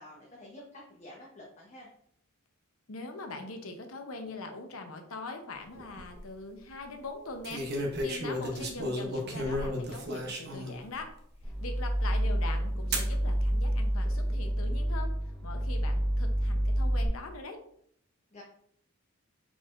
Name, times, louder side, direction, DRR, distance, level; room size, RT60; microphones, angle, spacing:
voice 1, 0.0-1.9 18.3-18.4, left 1 dB, 30° left, -4 dB, 0.8 m, -49 dB
voice 2, 2.9-11.1 11.6-15.1 15.4-17.6, left 3 dB, 75° left, 5 dB, 0.7 m, -42 dB
sound 1, 5.8-6.2 7.4-10.8 11.4-11.5 12.9-13.1 14.0-14.5, equal, 50° right, 0.8 m, -33 dB
sound 2, 11.4-17.1, equal, 5° left, 0.4 m, -28 dB
4.6 x 4.1 x 2.5 m, 0.68 s
head